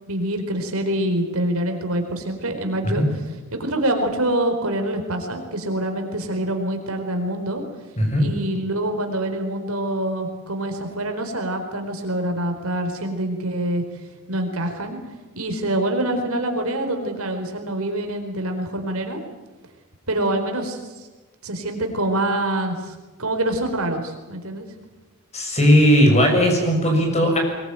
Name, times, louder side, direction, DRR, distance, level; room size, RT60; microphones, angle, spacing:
voice 1, 0.1-3.0 3.5-7.6 8.2-13.8 14.3-15.0 15.3-19.2 20.1-20.8 21.4-24.7, right 1 dB, 75° right, 4 dB, 4.4 m, -25 dB
voice 2, 25.3-27.4, equal, 30° left, 3 dB, 6.8 m, -17 dB
23.0 x 21.5 x 9.2 m, 1.2 s
head